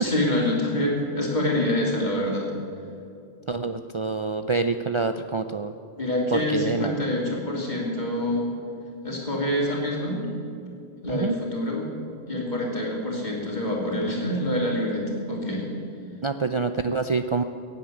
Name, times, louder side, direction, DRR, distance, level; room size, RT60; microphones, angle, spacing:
voice 1, 0.0-2.5 6.0-8.5 9.0-10.3 11.0-11.9 12.3-15.6, left 1 dB, 40° left, -3 dB, 3.2 m, -26 dB
voice 2, 3.5-5.7 6.3-7.0 11.1-11.4 16.2-17.4, right 4 dB, 55° right, 7 dB, 0.3 m, -26 dB
16.0 x 8.1 x 9.3 m, 2.7 s
omnidirectional pair, 1.2 m